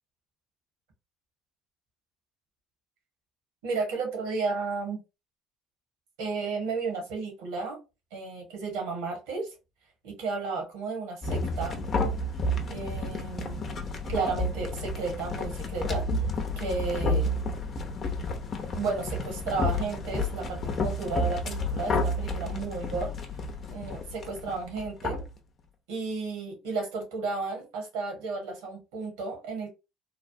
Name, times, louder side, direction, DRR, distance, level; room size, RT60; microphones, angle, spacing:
voice 1, 3.6-5.0 6.2-7.8 8.1-9.5 10.0-11.8 12.7-13.6 14.1-16.1 16.6-17.3 18.7-23.1 23.7-25.2 25.9-29.7, right 4 dB, 80° right, 1.3 m, -33 dB
sound 1, 11.2-25.3, left 1 dB, 45° left, 0.7 m, -31 dB
3.2 x 2.1 x 2.7 m
supercardioid pair, 80°, 0 cm